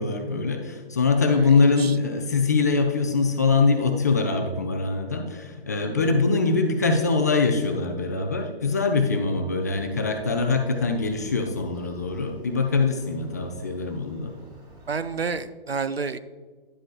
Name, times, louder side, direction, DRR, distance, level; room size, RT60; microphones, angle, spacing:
voice 1, 0.0-14.3, left 4 dB, 20° left, 4 dB, 0.3 m, -23 dB
voice 2, 1.3-1.9 14.9-16.2, right 5 dB, 85° right, 13 dB, 0.6 m, -30 dB
Motorcycle, 9.7-15.4, equal, 20° right, 2.0 m, -49 dB
11.0 x 7.2 x 2.4 m, 1.4 s
figure-of-eight pair, 125°, 30 cm